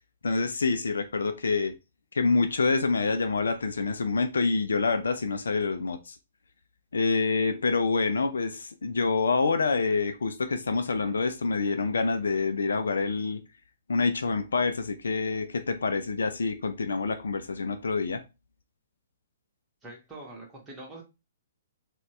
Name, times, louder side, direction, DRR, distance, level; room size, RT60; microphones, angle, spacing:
voice 1, 0.2-1.7 2.1-6.2 6.9-13.4 13.9-18.2, left 4 dB, 65° left, 0.4 m, -27 dB
voice 2, 19.8-21.0, right 2 dB, 10° right, 1.3 m, -44 dB
4.0 x 2.3 x 2.9 m
figure-of-eight pair, 120°, 0 cm